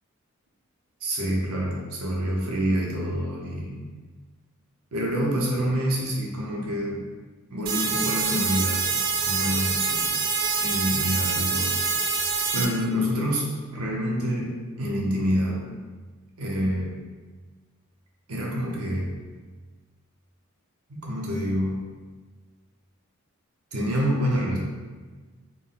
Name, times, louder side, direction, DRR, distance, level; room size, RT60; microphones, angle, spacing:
voice 1, 1.0-3.8 4.9-7.0 7.5-8.9 9.2-10.1 10.6-11.8 12.5-13.5 13.7-15.7 16.4-17.0 18.3-19.1 20.9-21.8 23.7-24.6, equal, 80° right, -2 dB, 0.8 m, -27 dB
sound 1, 7.7-12.7, right 5 dB, 45° right, 0.4 m, -25 dB
3.7 x 2.1 x 3.8 m, 1.4 s
head